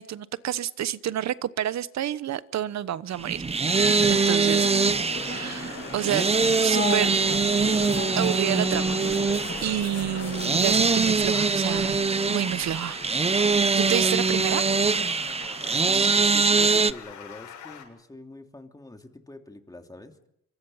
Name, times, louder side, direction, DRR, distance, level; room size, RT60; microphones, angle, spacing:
voice 1, 0.0-3.4 4.1-4.7 5.2-6.3 6.6-7.2 8.2-9.0 9.6-12.0 12.3-13.0 13.8-14.6 14.9-15.4 15.9-16.1, right 11 dB, 65° right, 16 dB, 1.1 m, -29 dB
sound 1, 3.2-16.9, right 4 dB, 20° right, 0.8 m, -23 dB
sound 2, 3.7-10.8, left 5 dB, 40° left, 5.8 m, -36 dB
voice 2, 4.3-4.9 13.8-14.4 15.7-20.3, left 2 dB, 10° left, 4 dB, 3.0 m, -44 dB
Stream, 5.1-17.8, left 8 dB, 85° left, 7.8 m, -44 dB
26.5 x 23.5 x 5.7 m, 0.78 s
cardioid pair, 90°, 30 cm